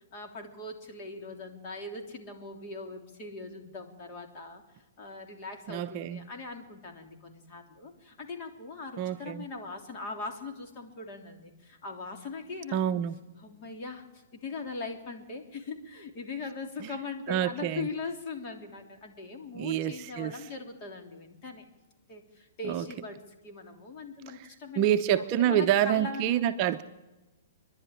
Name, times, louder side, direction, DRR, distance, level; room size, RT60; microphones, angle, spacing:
voice 1, 0.1-12.8 13.4-21.6 22.1-24.9 25.2-26.4, left 3 dB, 35° left, 3.3 m, -40 dB
voice 2, 5.7-6.3 9.0-9.5 12.7-13.1 16.8-16.9 17.3-17.9 19.5-20.5 22.6-22.9 24.3-24.5 24.8-26.8, right 11 dB, 35° right, 0.8 m, -27 dB
25.5 x 11.0 x 10.0 m
hypercardioid pair, 150°, 0 cm